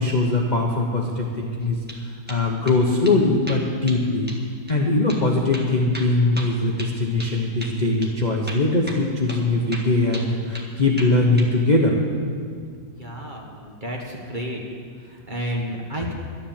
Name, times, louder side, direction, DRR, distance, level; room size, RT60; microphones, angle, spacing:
voice 1, 0.0-1.8 2.0-4.3 4.7-12.0, left 2 dB, 30° left, -1 dB, 0.9 m, -21 dB
sound 1, 1.6-2.0 2.3-2.8 3.0-3.2 3.5-4.0 4.3-4.4 4.7-4.8 5.1-5.2 5.5-7.3 7.6-7.8 8.0-8.1 8.5-9.0 9.3-9.4 9.7-10.7 11.0-11.5, right 1 dB, 5° right, 1.0 m, -36 dB
voice 2, 13.0-14.6 15.0-16.1, equal, 25° right, -1 dB, 1.5 m, -31 dB
12.0 x 10.0 x 7.3 m, 2.1 s
omnidirectional pair, 2.1 m